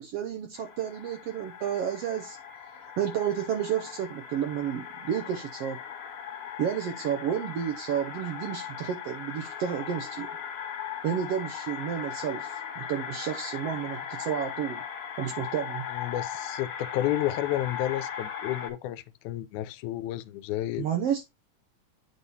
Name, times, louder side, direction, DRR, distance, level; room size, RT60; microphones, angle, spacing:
voice 1, 0.0-2.4 2.8-5.8 6.6-10.3 11.0-14.8 15.2-15.9 20.8-21.2, right 9 dB, 70° right, 1.6 m, -31 dB
sound 1, 0.5-18.7, left 8 dB, 65° left, 2.4 m, -38 dB
voice 2, 15.9-20.9, left 13 dB, 90° left, 2.1 m, -31 dB
8.6 x 3.6 x 4.1 m
omnidirectional pair, 3.3 m